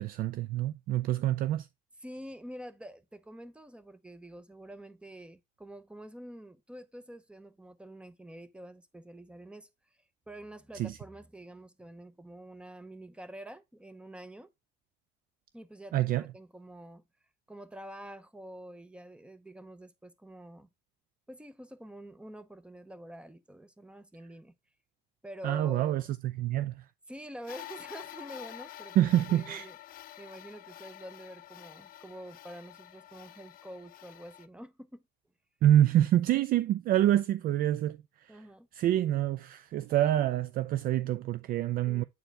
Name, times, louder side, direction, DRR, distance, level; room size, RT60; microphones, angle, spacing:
voice 1, 0.0-1.7 10.7-11.0 15.9-16.2 25.4-26.1 26.4-26.8 29.0-29.7 35.6-38.0 38.2-38.4 38.7-42.0, right 12 dB, 55° right, 0.4 m, -26 dB
voice 2, 2.0-9.7 10.3-14.5 15.5-17.0 17.5-20.7 21.3-24.5 25.2-26.1 27.1-29.8 30.2-35.0 38.3-38.7 41.9-42.0, right 1 dB, 5° right, 0.7 m, -47 dB
sound 1, 27.4-34.5, left 14 dB, 55° left, 0.5 m, -48 dB
8.0 x 4.5 x 3.4 m
cardioid pair, 135°, 18 cm